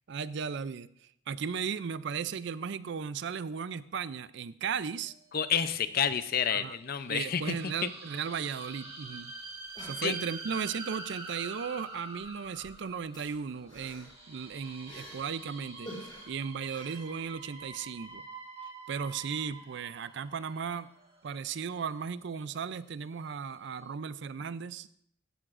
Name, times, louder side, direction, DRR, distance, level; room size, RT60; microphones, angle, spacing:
voice 1, 0.1-0.9 1.3-5.1 6.5-6.8 7.1-9.3 9.8-15.9 16.3-18.2 18.9-20.9 21.2-24.9, right 6 dB, 60° right, 16 dB, 0.4 m, -36 dB
sound 1, 5.0-5.7 6.3-6.4 6.7-22.9 23.2-23.4 23.7-23.8, right 3 dB, 30° right, 1.9 m, -46 dB
voice 2, 5.3-7.6 7.8-7.9 10.0-10.2, left 7 dB, 45° left, 12 dB, 0.5 m, -29 dB
sound 2, 8.8-8.9 9.1-9.2 9.5-10.6 11.6-11.9 12.2-15.4 15.9-17.7 18.1-18.2, left 1 dB, 25° left, 4.5 m, -50 dB
16.0 x 11.0 x 2.5 m, 0.67 s
head